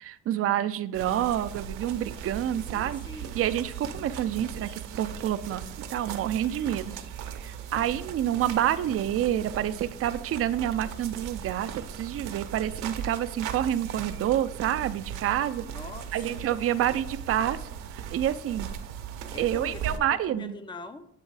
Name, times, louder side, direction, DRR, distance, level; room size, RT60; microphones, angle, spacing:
voice 1, 0.0-3.0 3.3-7.0 7.4-15.6 16.1-17.7 17.9-18.7 19.4-20.6, right 11 dB, 50° right, 11 dB, 0.4 m, -28 dB
sound 1, 0.9-20.0, right 8 dB, 85° right, 0.7 m, -38 dB
voice 2, 2.7-3.4 15.6-16.4 19.3-21.1, left 3 dB, 15° left, 10 dB, 0.5 m, -43 dB
8.3 x 3.1 x 4.7 m, 0.77 s
cardioid pair, 90°, 30 cm